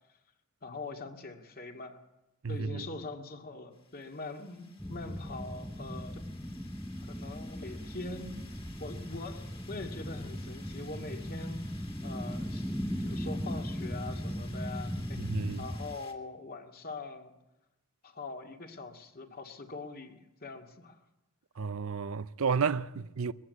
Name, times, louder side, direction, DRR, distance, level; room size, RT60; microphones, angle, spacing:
voice 1, 0.6-2.0 2.5-6.2 7.0-8.3 8.8-14.9 15.6-17.3 18.0-21.0, left 3 dB, 45° left, 2.2 m, -43 dB
voice 2, 2.4-2.9 15.2-15.6 21.6-23.3, right 5 dB, 70° right, 0.6 m, -32 dB
sound 1, 3.7-16.1, left 4 dB, 25° left, 2.3 m, -56 dB
sound 2, 4.8-16.0, equal, ahead, 0.6 m, -38 dB
21.5 x 14.5 x 8.4 m
head